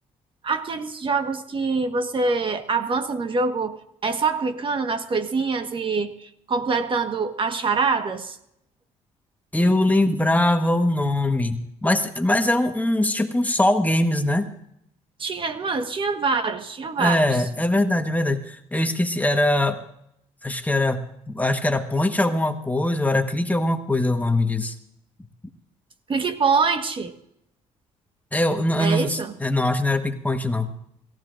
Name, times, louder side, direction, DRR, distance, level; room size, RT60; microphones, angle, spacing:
voice 1, 0.4-8.4 15.2-17.3 26.1-27.1 28.8-29.3, right 4 dB, 40° right, 7 dB, 1.4 m, -25 dB
voice 2, 9.5-14.5 17.0-19.8 20.4-24.7 28.3-30.7, left 1 dB, 10° left, 6 dB, 1.3 m, -22 dB
26.5 x 15.0 x 2.6 m, 0.76 s
cardioid pair, 80°, 13 cm